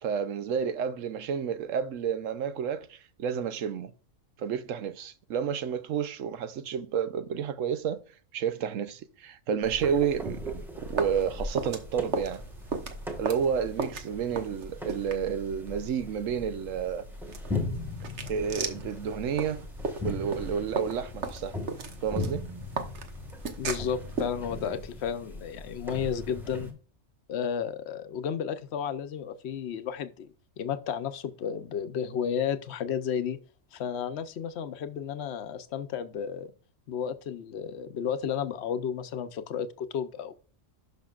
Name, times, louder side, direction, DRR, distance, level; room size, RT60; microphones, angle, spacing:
voice 1, 0.0-3.9 4.4-8.0 8.3-12.4 13.2-17.0 18.3-19.6 20.0-21.5 22.0-22.4, right 7 dB, 80° right, 1.1 m, -30 dB
sound 1, 9.6-26.7, left 2 dB, ahead, 1.5 m, -39 dB
sound 2, 10.8-24.7, right 4 dB, 60° right, 1.3 m, -38 dB
voice 2, 23.6-26.7 27.3-33.4 33.7-36.5 36.9-40.3, left 8 dB, 60° left, 1.0 m, -32 dB
11.5 x 5.8 x 2.4 m
omnidirectional pair, 1.3 m